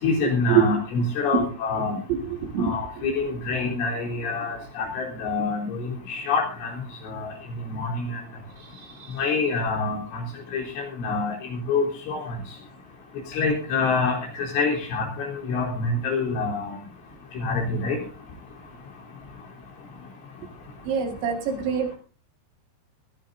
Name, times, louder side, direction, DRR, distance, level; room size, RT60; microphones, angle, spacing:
voice 1, 0.0-2.0 2.6-6.7 7.0-7.3 7.7-8.2 9.2-10.2 10.5-12.4 13.3-16.8 17.4-18.0, left 3 dB, 80° left, -1 dB, 6.1 m, -26 dB
voice 2, 20.9-22.0, right 8 dB, 75° right, 4 dB, 4.1 m, -23 dB
19.5 x 14.5 x 2.6 m, 0.36 s
omnidirectional pair, 5.4 m